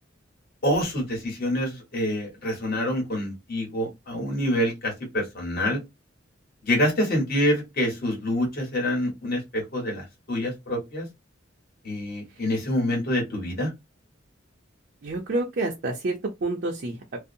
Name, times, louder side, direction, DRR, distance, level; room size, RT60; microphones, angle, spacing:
voice 1, 0.6-5.8 6.6-11.1 11.8-13.7, left 1 dB, 50° left, 1.3 m, -26 dB
voice 2, 15.0-17.2, right 2 dB, 55° right, 0.5 m, -28 dB
2.6 x 2.0 x 2.6 m
head